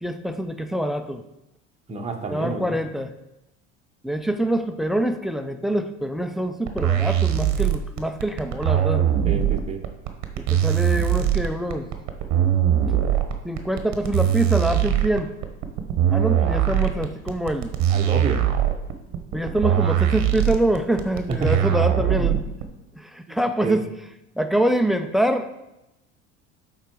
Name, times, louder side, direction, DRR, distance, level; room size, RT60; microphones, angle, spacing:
voice 1, 0.0-1.2 2.3-3.1 4.0-9.0 10.4-11.9 13.4-15.3 16.1-17.7 19.3-22.4 23.0-23.9 24.4-25.5, right 1 dB, ahead, 9 dB, 0.5 m, -25 dB
voice 2, 1.9-2.8 9.2-9.8 17.9-18.4 21.3-21.8 23.6-23.8, right 4 dB, 15° right, 1 dB, 1.0 m, -28 dB
sound 1, 6.7-22.6, right 10 dB, 50° right, 1.0 m, -21 dB
8.2 x 3.9 x 4.7 m, 0.93 s
hypercardioid pair, 80°, 36 cm